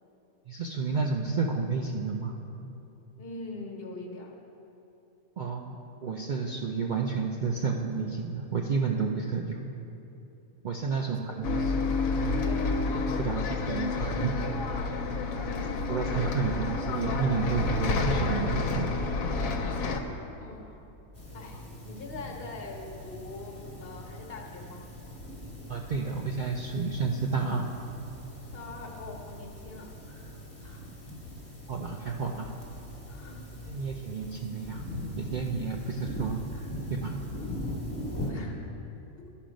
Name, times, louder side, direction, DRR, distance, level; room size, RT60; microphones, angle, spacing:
voice 1, 0.5-2.4 5.4-9.6 10.6-12.4 13.2-14.4 15.9-19.0 25.7-27.7 31.7-32.5 33.7-34.9 35.2-37.2, right 5 dB, 90° right, 0 dB, 0.4 m, -31 dB
voice 2, 3.2-4.3 10.9-13.1 16.1-16.3 20.4-20.8 21.3-24.9 28.5-30.9 33.1-33.4 38.3-38.6 39.2-39.3, left 2 dB, 45° left, 0 dB, 1.2 m, -44 dB
Bus, 11.4-20.0, left 3 dB, 75° left, 1.1 m, -29 dB
sound 1, 21.1-38.3, left 1 dB, 10° left, 1.3 m, -41 dB
12.0 x 5.8 x 5.1 m, 2.9 s
omnidirectional pair, 1.5 m